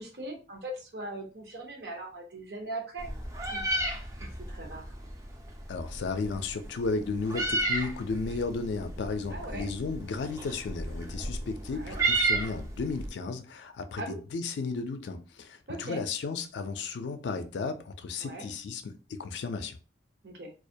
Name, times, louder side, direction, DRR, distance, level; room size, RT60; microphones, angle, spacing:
voice 1, 0.0-3.1 3.5-3.9 4.2-4.8 9.3-9.7 11.7-12.0 14.0-14.2 15.7-16.0 18.2-18.5 20.2-20.5, right 2 dB, 60° right, 0.7 m, -40 dB
Meow, 3.0-13.1, right 2 dB, 20° right, 0.3 m, -33 dB
voice 2, 5.7-19.8, left 4 dB, 75° left, 0.4 m, -34 dB
2.3 x 2.1 x 2.6 m
head